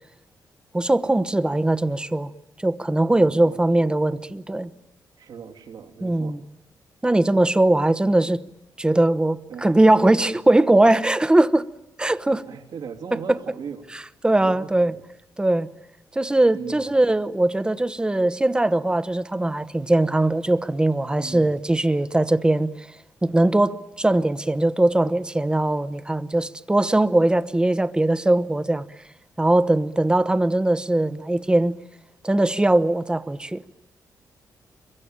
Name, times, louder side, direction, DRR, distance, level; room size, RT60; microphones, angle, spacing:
voice 1, 0.7-2.3 2.6-4.7 6.0-6.4 7.0-8.4 8.8-11.7 12.0-12.5 14.2-14.9 15.4-15.7 16.1-22.9 23.2-28.8 29.4-31.8 32.2-33.7, right 1 dB, 10° right, 1.0 m, -20 dB
voice 2, 3.1-3.9 5.2-6.4 9.5-9.7 10.2-10.3 12.5-14.0 14.3-15.0 16.5-16.9 21.2-21.5, right 6 dB, 75° right, 3.0 m, -39 dB
26.0 x 23.0 x 8.9 m
cardioid pair, 110°, 7 cm